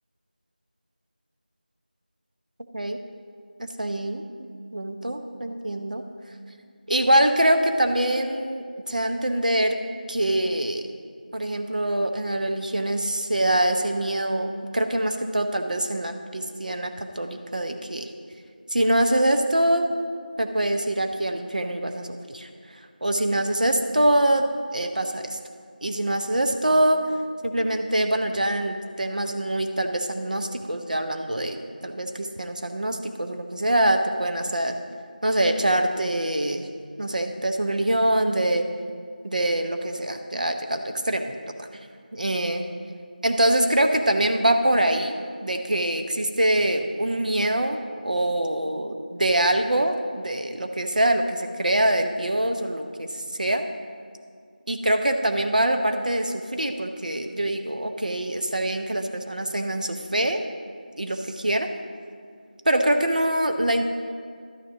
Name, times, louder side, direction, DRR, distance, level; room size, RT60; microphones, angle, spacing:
voice 1, 3.6-6.0 6.9-9.8 10.1-10.9 11.3-18.1 18.7-19.9 20.4-22.5 23.0-24.5 24.7-25.4 25.8-27.0 27.4-34.8 35.2-36.7 37.0-38.7 39.2-41.7 42.1-42.7 43.2-53.6 54.7-60.4 61.0-61.7 62.6-63.9, right 1 dB, 55° right, 6 dB, 0.8 m, -24 dB
12.0 x 6.5 x 5.0 m, 2.1 s
figure-of-eight pair, 180°, 5 cm